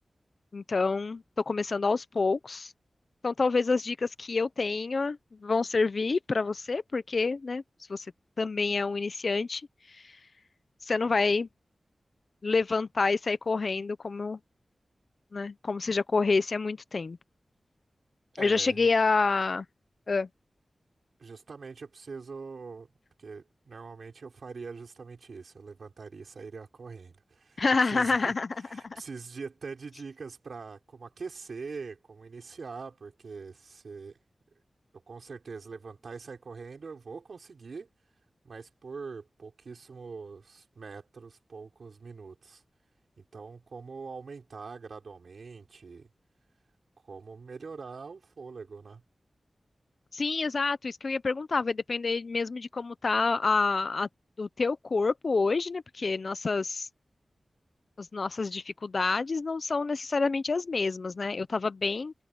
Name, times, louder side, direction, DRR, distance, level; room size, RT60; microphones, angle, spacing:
voice 1, 0.5-2.7 3.2-7.6 7.9-8.1 8.4-10.2 10.8-11.5 12.4-14.4 15.3-17.2 18.4-19.7 20.1-20.3 27.6-29.0 50.1-54.1 54.4-56.9 58.0-62.1, left 4 dB, 55° left, 0.6 m, -28 dB
voice 2, 18.3-18.9 21.2-22.9 23.2-27.6 27.9-28.3 28.7-34.2 35.1-37.9 38.4-42.6 43.2-46.1 47.0-49.0, right 4 dB, 75° right, 5.9 m, -43 dB
wide cardioid pair, 100°, 0 cm